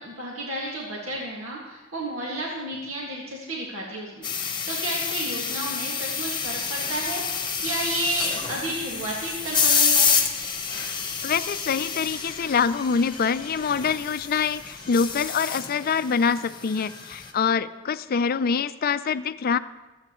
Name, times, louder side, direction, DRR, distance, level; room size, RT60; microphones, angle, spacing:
voice 1, 0.0-10.1, right 1 dB, 75° right, -4 dB, 2.0 m, -32 dB
sound 1, 4.2-17.3, left 6 dB, 20° left, 1.2 m, -28 dB
sound 2, 6.3-15.2, equal, 5° right, 5.2 m, -51 dB
voice 2, 11.2-19.6, left 6 dB, 45° left, 14 dB, 0.4 m, -25 dB
24.5 x 8.6 x 3.1 m, 1.2 s
head